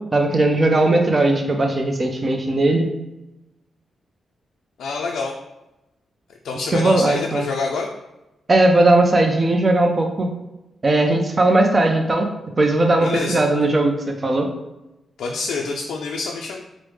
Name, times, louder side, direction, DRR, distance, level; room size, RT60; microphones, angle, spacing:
voice 1, 0.1-2.9 6.5-7.5 8.5-10.3 10.8-12.3 12.6-14.5, right 2 dB, 25° right, 4 dB, 0.4 m, -18 dB
voice 2, 4.8-5.3 6.4-7.9 13.0-13.4 15.2-16.6, left 4 dB, 90° left, -1 dB, 0.3 m, -26 dB
4.7 x 2.0 x 3.1 m, 0.98 s
wide cardioid pair, 155°, 0 cm